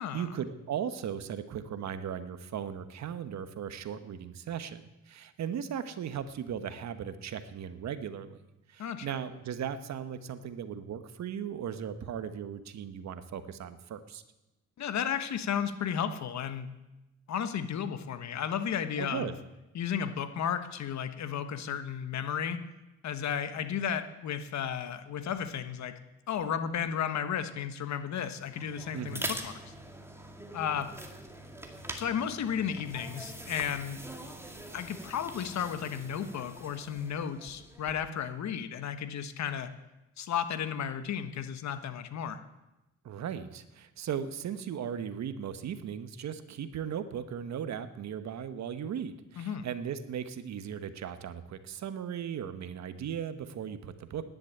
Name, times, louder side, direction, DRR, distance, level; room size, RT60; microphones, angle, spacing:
voice 1, 0.0-8.4 8.7-14.2 19.0-19.3 28.9-29.3 43.0-54.2, right 8 dB, 65° right, 11 dB, 1.2 m, -37 dB
voice 2, 8.8-9.2 14.8-16.7 17.3-19.3 19.7-22.6 23.0-26.0 26.3-29.7 30.5-30.9 32.0-34.0 34.7-39.7 40.2-42.4 49.4-49.7, left 8 dB, 65° left, 10 dB, 1.3 m, -33 dB
sound 1, 28.4-38.2, right 1 dB, 10° right, 2.2 m, -44 dB
10.5 x 10.0 x 9.0 m, 0.99 s
cardioid pair, 90°, 30 cm